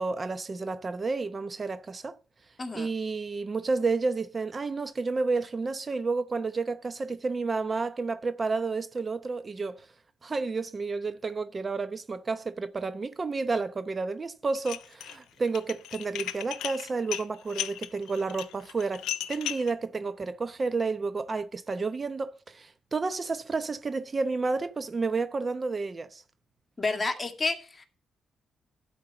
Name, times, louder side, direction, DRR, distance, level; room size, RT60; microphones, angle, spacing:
voice 1, 0.0-2.2 2.7-9.9 10.2-19.0 19.3-26.2, right 4 dB, 35° right, 0.7 m, -31 dB
Dishes pots and pans, 14.5-15.2 15.5-19.7, left 12 dB, 90° left, 0.6 m, -35 dB
voice 2, 26.8-27.9, left 3 dB, 30° left, 2.0 m, -30 dB
12.0 x 4.7 x 6.9 m
cardioid pair, 70°, 0 cm